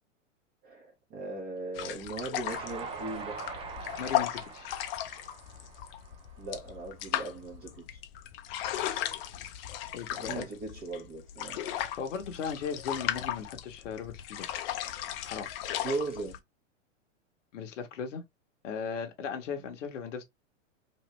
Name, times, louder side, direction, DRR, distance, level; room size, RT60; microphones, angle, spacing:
voice 1, 0.6-3.4 6.4-8.0 10.1-11.6 15.8-16.4 19.6-19.8, right 3 dB, 30° right, 1.1 m, -38 dB
sound 1, 1.8-16.4, left 12 dB, 50° left, 0.6 m, -36 dB
Train, 2.5-6.9, right 5 dB, 15° right, 0.5 m, -43 dB
voice 2, 4.0-4.7 9.9-10.5 11.8-14.7 15.2-15.5 17.5-18.2 18.6-20.2, left 6 dB, 70° left, 1.0 m, -37 dB
3.1 x 2.7 x 3.1 m
hypercardioid pair, 115°, 38 cm